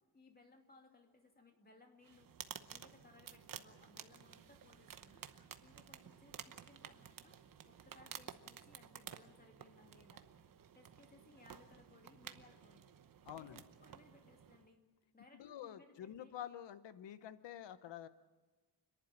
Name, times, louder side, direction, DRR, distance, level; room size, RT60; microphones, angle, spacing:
voice 1, 0.1-2.4 2.7-5.3 5.6-7.4 7.7-10.3 10.7-12.8 13.3-14.8 15.1-16.4, left 2 dB, 20° left, 3 dB, 2.6 m, -64 dB
sound 1, 2.0-14.7, right 8 dB, 50° right, 1.0 m, -54 dB
sound 2, 2.1-7.2, left 2 dB, 65° left, 7.6 m, -76 dB
voice 2, 13.3-13.6 15.3-18.1, left 10 dB, 85° left, 13 dB, 0.9 m, -48 dB
29.0 x 11.0 x 8.9 m, 1.3 s
wide cardioid pair, 165°, 42 cm